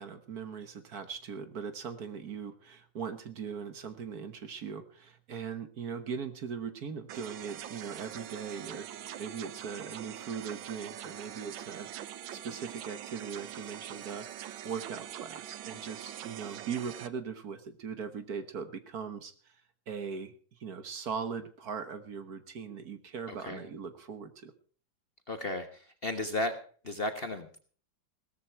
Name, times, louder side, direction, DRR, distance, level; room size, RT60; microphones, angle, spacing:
voice 1, 0.0-11.9 12.3-19.6 19.9-24.5, right 6 dB, 55° right, 10 dB, 1.6 m, -40 dB
sound 1, 7.1-17.1, right 11 dB, 85° right, 1.6 m, -43 dB
voice 2, 23.3-23.7 25.3-27.6, left 1 dB, 35° left, 8 dB, 1.1 m, -35 dB
17.0 x 14.0 x 4.6 m, 0.42 s
omnidirectional pair, 2.1 m